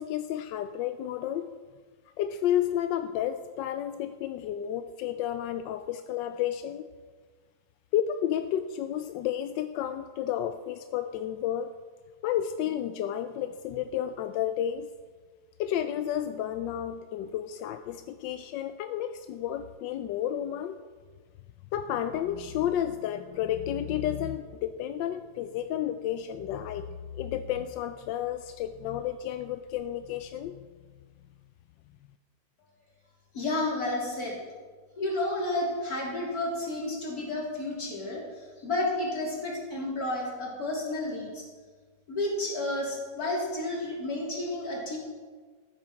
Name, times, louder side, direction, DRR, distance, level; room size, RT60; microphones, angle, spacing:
voice 1, 0.0-1.5 2.2-6.9 7.9-11.7 12.2-14.9 15.6-20.7 21.7-30.7, left 10 dB, 90° left, 9 dB, 1.3 m, -31 dB
voice 2, 33.3-34.4 35.0-41.4 42.1-45.0, left 2 dB, 55° left, -3 dB, 3.9 m, -31 dB
14.5 x 9.7 x 5.8 m, 1.5 s
omnidirectional pair, 1.9 m